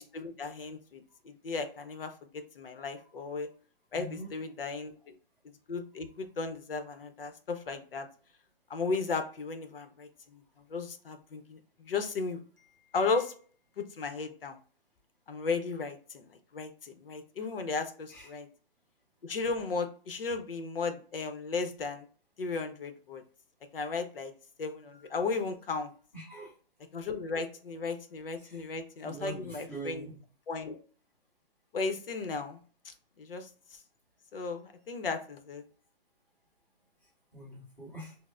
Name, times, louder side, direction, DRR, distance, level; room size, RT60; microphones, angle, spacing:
voice 1, 0.0-3.5 3.9-4.9 5.7-8.1 8.7-10.4 10.7-12.4 12.9-13.3 13.8-14.6 15.3-16.2 16.5-18.5 19.2-22.0 22.4-23.2 23.7-24.3 24.6-25.9 26.9-30.1 30.5-30.8 31.7-32.6 32.8-33.5 34.3-35.6, left 4 dB, 70° left, 7 dB, 0.8 m, -35 dB
voice 2, 3.9-4.3 18.1-18.3 24.9-25.0 26.1-26.5 28.4-28.7 29.0-30.2 37.3-38.2, right 1 dB, 15° left, -11 dB, 1.5 m, -43 dB
6.0 x 2.1 x 2.4 m, 0.42 s
hypercardioid pair, 175°, 29 cm